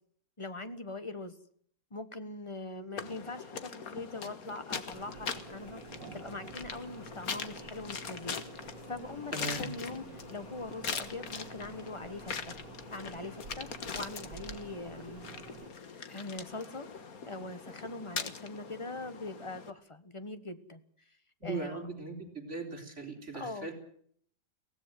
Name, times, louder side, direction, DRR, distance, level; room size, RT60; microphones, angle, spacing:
voice 1, 0.4-1.4 1.9-5.8 6.1-12.6 12.9-13.7 13.9-15.3 16.0-16.9 17.2-20.8 21.4-21.9 23.3-23.7, left 2 dB, 20° left, 10 dB, 1.3 m, -42 dB
sound 1, 3.0-19.7, left 6 dB, 55° left, 1.8 m, -42 dB
sound 2, 4.9-15.7, right 6 dB, 80° right, 2.2 m, -50 dB
voice 2, 9.3-9.7 21.4-23.7, right 3 dB, 40° right, 3 dB, 4.3 m, -39 dB
23.5 x 17.0 x 7.8 m, 0.62 s
omnidirectional pair, 1.8 m